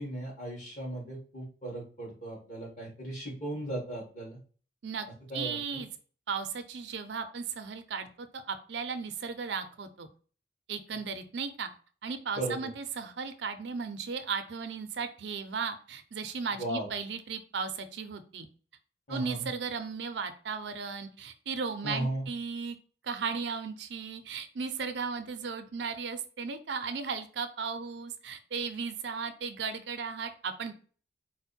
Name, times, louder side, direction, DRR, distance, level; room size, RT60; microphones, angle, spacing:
voice 1, 0.0-4.4 5.3-5.8 12.4-12.6 16.6-16.9 19.1-19.5 21.8-22.2, right 1 dB, 45° left, -3 dB, 1.8 m, -36 dB
voice 2, 5.3-5.9 6.3-10.1 10.7-11.7 12.0-18.5 19.1-22.8 23.0-30.7, right 5 dB, 70° right, 9 dB, 0.5 m, -36 dB
4.4 x 2.1 x 4.2 m, 0.41 s
head